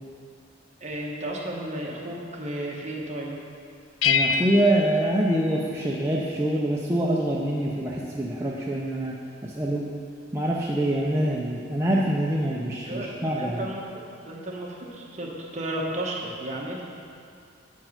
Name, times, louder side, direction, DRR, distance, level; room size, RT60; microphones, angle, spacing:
voice 1, 0.8-3.4 12.8-13.9 14.2-16.8, right 1 dB, 35° right, -2 dB, 1.0 m, -33 dB
sound 1, 4.0-6.2, left 5 dB, 70° left, 0.3 m, -27 dB
voice 2, 4.0-9.1 9.4-9.8 10.3-13.6, right 1 dB, 15° right, -5 dB, 0.5 m, -25 dB
7.7 x 4.6 x 5.8 m, 2.5 s
head